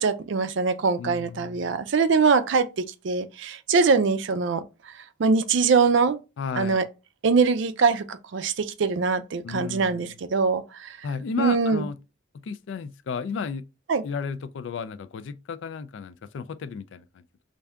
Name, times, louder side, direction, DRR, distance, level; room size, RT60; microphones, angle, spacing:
voice 1, 0.0-4.6 5.2-6.2 6.6-6.8 7.2-11.0 11.4-11.8 13.9-14.0, right 5 dB, 70° right, 0.4 m, -23 dB
voice 2, 1.0-1.8 6.4-6.8 9.4-10.2 11.0-12.0 12.4-13.7 14.0-17.2, left 5 dB, 70° left, 0.3 m, -33 dB
3.4 x 2.6 x 3.5 m
head